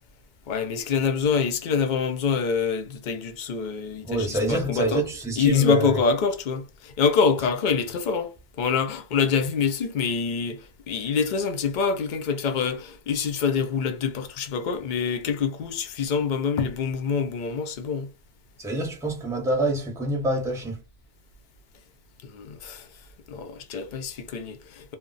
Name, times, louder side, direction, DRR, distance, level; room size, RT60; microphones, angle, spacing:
voice 1, 0.5-5.0 5.4-8.3 8.6-18.1 22.2-22.9 23.3-24.9, left 5 dB, 55° left, 0.5 m, -26 dB
voice 2, 4.0-6.0 18.6-20.8, right 1 dB, 5° right, 0.7 m, -26 dB
2.2 x 2.1 x 3.8 m
omnidirectional pair, 1.2 m